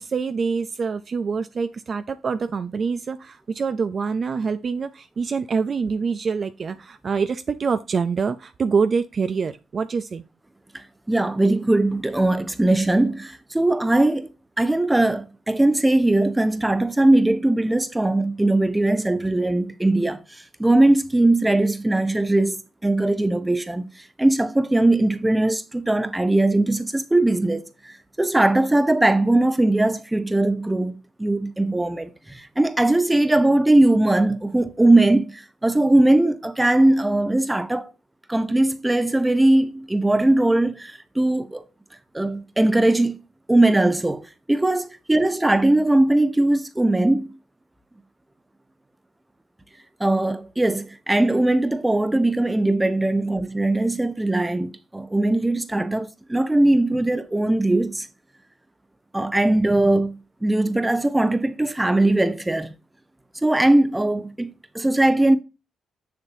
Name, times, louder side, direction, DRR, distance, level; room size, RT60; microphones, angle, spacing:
voice 1, 0.0-10.2, right 5 dB, 45° right, 0.5 m, -25 dB
voice 2, 10.7-14.3 14.6-23.9 24.2-37.8 38.3-41.6 42.1-43.2 43.5-47.4 50.0-58.1 59.1-62.7 63.4-65.4, right 2 dB, 10° right, 0.9 m, -20 dB
6.9 x 6.6 x 2.7 m
cardioid pair, 90°, 0 cm